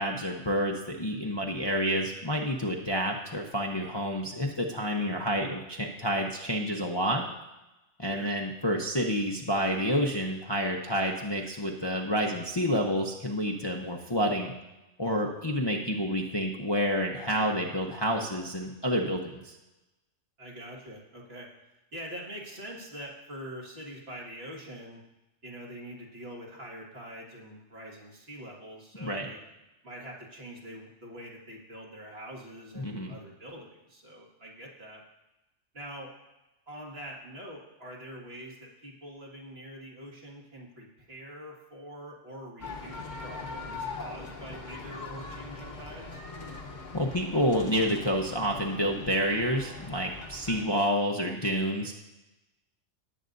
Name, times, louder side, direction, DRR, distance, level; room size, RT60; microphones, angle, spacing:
voice 1, 0.0-7.3 8.0-14.5 15.0-19.5 29.0-29.3 32.8-33.1 46.9-52.0, equal, 25° left, 0 dB, 0.7 m, -29 dB
voice 2, 20.4-21.5 21.9-25.0 25.4-29.4 29.8-35.0 35.7-36.1 36.7-46.2, equal, 55° right, -3 dB, 2.2 m, -44 dB
sound 1, 42.6-50.7, left 3 dB, 40° left, 1.1 m, -41 dB
18.5 x 8.1 x 2.6 m, 0.99 s
omnidirectional pair, 1.2 m